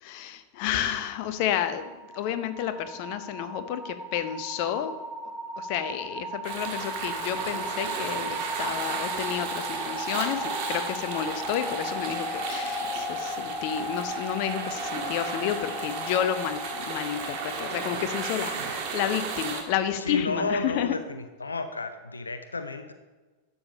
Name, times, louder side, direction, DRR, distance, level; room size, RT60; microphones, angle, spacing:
voice 1, 0.0-5.0 5.6-21.0, left 10 dB, 45° left, 10 dB, 0.8 m, -31 dB
sound 1, 1.4-19.3, equal, 5° right, 0.9 m, -36 dB
sound 2, 1.9-19.6, left 1 dB, 25° left, 4.2 m, -55 dB
sound 3, 6.4-19.6, right 5 dB, 45° right, 1.5 m, -35 dB
voice 2, 20.0-22.9, left 3 dB, 75° left, 9 dB, 0.6 m, -32 dB
11.5 x 7.2 x 5.3 m, 1.3 s
figure-of-eight pair, 90°, 0 cm